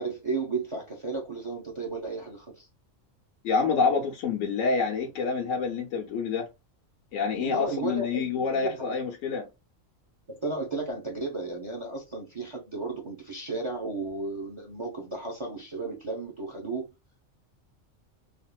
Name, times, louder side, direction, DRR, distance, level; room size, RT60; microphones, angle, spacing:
voice 1, 0.0-2.7 7.3-9.0 10.3-16.9, right 3 dB, 30° right, 0.6 m, -34 dB
voice 2, 3.4-6.5 7.1-9.5, left 5 dB, 75° left, 1.1 m, -27 dB
3.5 x 2.5 x 2.2 m
omnidirectional pair, 1.4 m